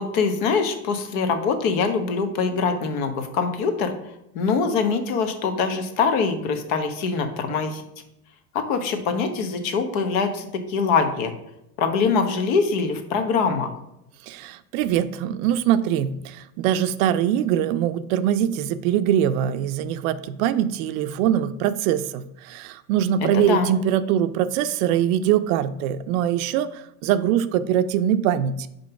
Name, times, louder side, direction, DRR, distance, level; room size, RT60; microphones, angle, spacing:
voice 1, 0.0-3.9 4.3-7.8 8.5-11.3 11.8-13.7 23.2-23.7, left 5 dB, 60° left, 7 dB, 1.1 m, -23 dB
voice 2, 14.3-28.7, right 10 dB, 60° right, 12 dB, 0.5 m, -23 dB
5.2 x 4.0 x 5.8 m, 0.82 s
supercardioid pair, 135°, 46 cm